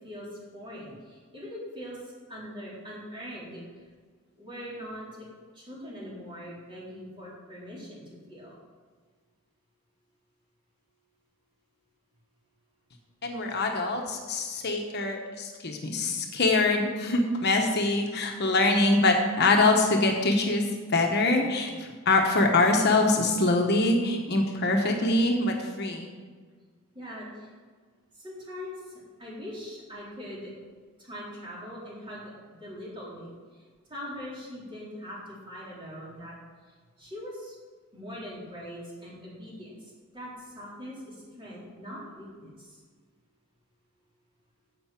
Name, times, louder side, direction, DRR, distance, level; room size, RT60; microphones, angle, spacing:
voice 1, 0.0-2.0 2.3-3.6 4.4-5.2 5.5-8.6 26.9-27.5 28.2-30.5 31.0-32.3 32.6-33.6 33.9-36.4 37.0-37.6 37.9-42.8, equal, 25° right, -6 dB, 4.0 m, -42 dB
voice 2, 13.2-20.7 20.9-26.1, left 2 dB, 50° left, 2 dB, 1.3 m, -24 dB
10.5 x 8.0 x 6.0 m, 1.5 s
head